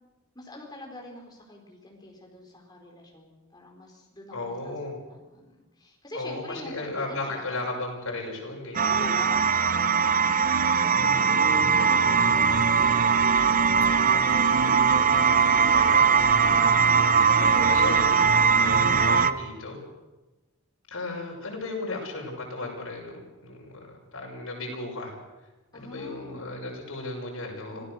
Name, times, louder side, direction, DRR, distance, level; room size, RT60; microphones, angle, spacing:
voice 1, 0.3-4.8 5.1-7.6 8.8-10.5 10.8-13.8 16.4-16.7 25.7-26.4 27.7-27.8, left 1 dB, 20° left, 0 dB, 4.5 m, -45 dB
voice 2, 4.3-5.0 6.1-9.0 11.0-11.7 14.9-16.6 17.3-18.2 18.6-19.8 20.9-25.1 25.7-27.8, left 2 dB, 85° left, -1 dB, 6.3 m, -35 dB
sound 1, 8.7-19.3, right 6 dB, 40° right, 0.7 m, -21 dB
25.5 x 16.5 x 6.6 m, 1.1 s
head